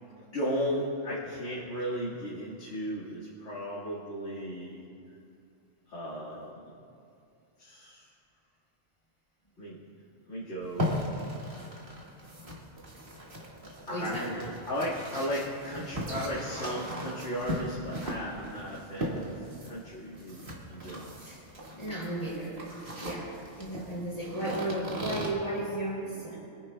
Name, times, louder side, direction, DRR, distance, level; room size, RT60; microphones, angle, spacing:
voice 1, 0.1-4.8 5.9-6.7 7.6-8.0 9.6-9.8 10.3-10.9 13.9-21.2, equal, 70° left, -10 dB, 2.2 m, -35 dB
sound 1, 10.6-25.3, equal, 45° right, 1.8 m, -38 dB
voice 2, 13.9-14.3 21.2-21.4 21.7-22.6 22.9-26.4, right 1 dB, 30° left, -7 dB, 2.8 m, -34 dB
25.5 x 10.0 x 2.2 m, 2.5 s
omnidirectional pair, 1.3 m